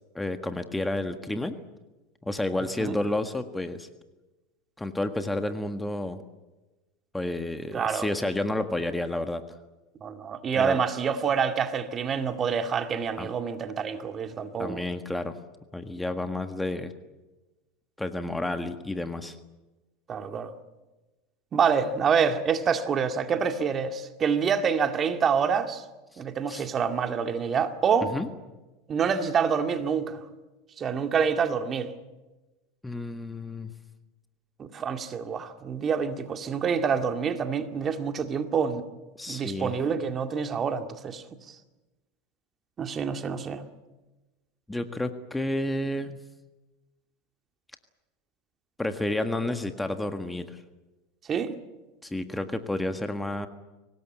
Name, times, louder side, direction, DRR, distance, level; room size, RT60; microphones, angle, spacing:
voice 1, 0.1-1.5 2.2-3.9 4.8-6.2 7.1-9.4 10.5-10.8 13.2-13.3 14.6-15.4 15.7-16.9 18.0-19.4 26.1-26.2 26.5-26.7 28.0-28.3 32.8-33.7 39.2-39.7 44.7-46.2 48.8-50.6 52.0-53.5, left 1 dB, 10° left, 1.6 m, -30 dB
voice 2, 7.7-8.1 10.0-14.8 20.1-20.5 21.5-25.8 26.2-28.1 28.9-30.2 30.8-31.9 34.6-38.8 39.3-41.5 42.8-43.6 51.3-51.6, right 6 dB, 30° right, 2.1 m, -27 dB
24.5 x 19.0 x 8.9 m
hypercardioid pair, 85°, 0 cm